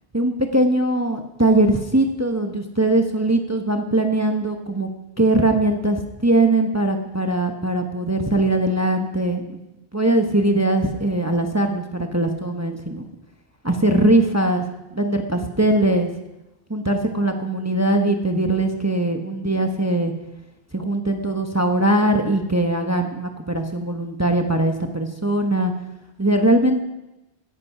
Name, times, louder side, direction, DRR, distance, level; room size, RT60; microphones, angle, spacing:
voice 1, 0.1-4.9 5.2-9.6 9.9-13.0 13.6-14.6 14.9-16.1 16.7-20.1 20.7-25.7 26.2-26.8, right 1 dB, 15° right, 4 dB, 1.1 m, -21 dB
17.0 x 10.5 x 5.6 m, 0.97 s
omnidirectional pair, 1.1 m